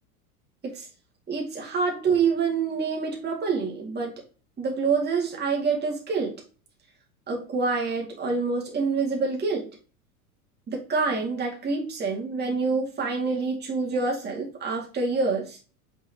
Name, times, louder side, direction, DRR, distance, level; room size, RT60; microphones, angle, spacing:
voice 1, 1.3-4.1 4.6-6.3 7.3-9.7 10.7-15.6, right 4 dB, 25° right, -1 dB, 2.3 m, -26 dB
6.2 x 5.4 x 3.0 m, 0.36 s
hypercardioid pair, 85°, 44 cm